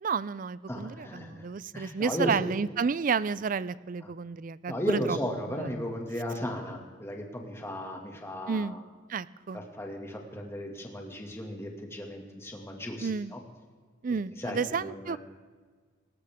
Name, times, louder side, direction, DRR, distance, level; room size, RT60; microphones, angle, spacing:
voice 1, 0.0-5.2 5.5-5.7 8.5-8.8 9.1-9.6 13.0-13.3 14.0-15.2, right 5 dB, 40° right, 18 dB, 0.4 m, -31 dB
voice 2, 0.7-1.5 1.7-2.4 4.0-4.1 4.7-8.8 9.5-13.4 14.4-15.2, equal, 15° left, 1 dB, 2.0 m, -35 dB
19.0 x 18.0 x 3.6 m, 1.5 s
head